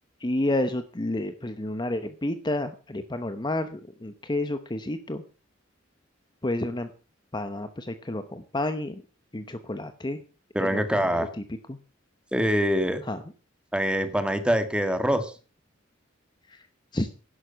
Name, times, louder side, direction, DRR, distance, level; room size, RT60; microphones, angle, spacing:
voice 1, 0.2-5.2 6.4-6.9 7.3-9.0 9.3-10.2 10.6-11.3 11.7-11.8 13.1-13.2 16.5-16.6 16.9-17.1, left 1 dB, 20° left, 10 dB, 0.9 m, -30 dB
voice 2, 10.5-11.3 12.3-13.0 13.7-15.3, equal, 5° right, 9 dB, 1.8 m, -24 dB
11.5 x 11.5 x 5.7 m, 0.36 s
head